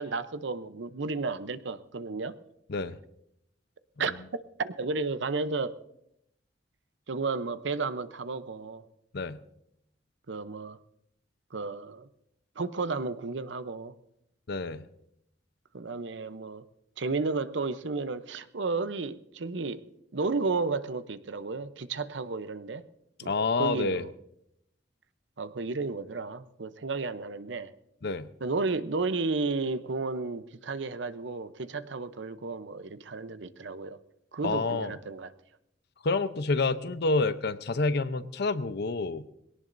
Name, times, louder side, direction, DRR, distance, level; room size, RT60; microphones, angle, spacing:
voice 1, 0.0-2.4 4.0-4.1 4.6-5.8 7.1-8.8 10.3-10.8 11.5-12.1 12.6-13.9 15.7-16.6 17.0-19.8 20.1-22.8 23.2-24.1 25.4-27.7 28.4-34.0 34.3-35.3, right 3 dB, 75° right, 12 dB, 0.8 m, -32 dB
voice 2, 14.5-14.9 23.3-24.0 28.0-28.3 34.4-34.9 36.0-39.2, left 3 dB, 65° left, 12 dB, 0.7 m, -28 dB
21.5 x 17.5 x 2.6 m, 0.77 s
head